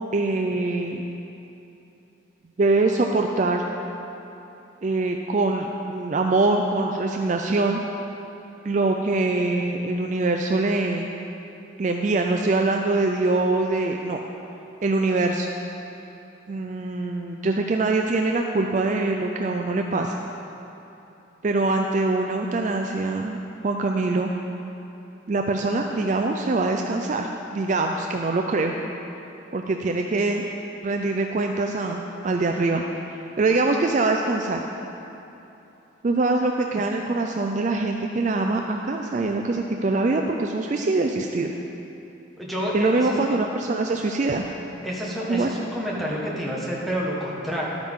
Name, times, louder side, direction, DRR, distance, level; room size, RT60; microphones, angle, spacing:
voice 1, 0.1-1.0 2.6-3.6 4.8-7.8 8.6-11.1 11.8-14.2 14.8-15.5 16.5-20.2 21.4-23.4 23.6-24.3 25.3-28.7 29.5-30.5 30.8-32.8 33.1-34.6 36.0-41.5 42.7-44.5 45.3-45.5, right 3 dB, 40° right, 3 dB, 0.4 m, -23 dB
voice 2, 42.4-43.2 44.8-47.6, equal, ahead, -5 dB, 1.3 m, -28 dB
12.0 x 8.9 x 3.6 m, 2.9 s
head